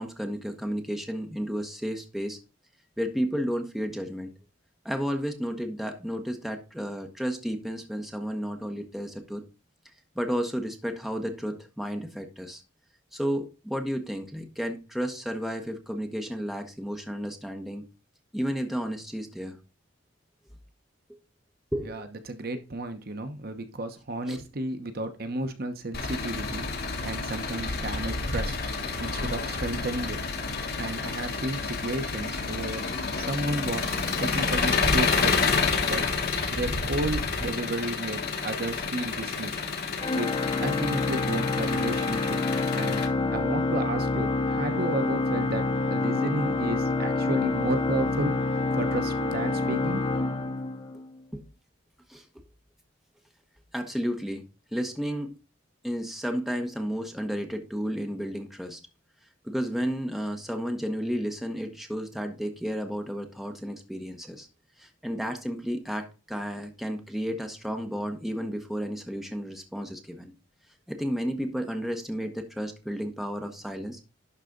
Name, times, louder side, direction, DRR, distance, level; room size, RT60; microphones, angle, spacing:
voice 1, 0.0-2.4 3.0-4.3 4.8-9.4 10.2-12.6 13.1-17.9 18.3-19.6 21.7-22.0 24.3-24.4 51.3-51.4 52.1-52.2 53.7-54.4 54.7-55.3 55.8-58.8 59.4-64.5 64.8-70.3 70.9-74.0, equal, ahead, 5 dB, 1.1 m, -32 dB
voice 2, 21.8-26.6 27.0-28.6 29.0-30.2 30.5-32.9 33.2-33.9 34.2-35.4 35.8-36.0 36.5-39.6 40.1-40.3 40.6-42.4 42.7-43.0 43.3-48.4 48.7-50.0, right 1 dB, 50° right, 8 dB, 1.0 m, -32 dB
Engine, 25.9-43.1, left 4 dB, 50° left, 1.4 m, -29 dB
Organ, 40.0-51.2, left 3 dB, 30° left, 1.8 m, -27 dB
11.5 x 4.1 x 3.9 m, 0.30 s
head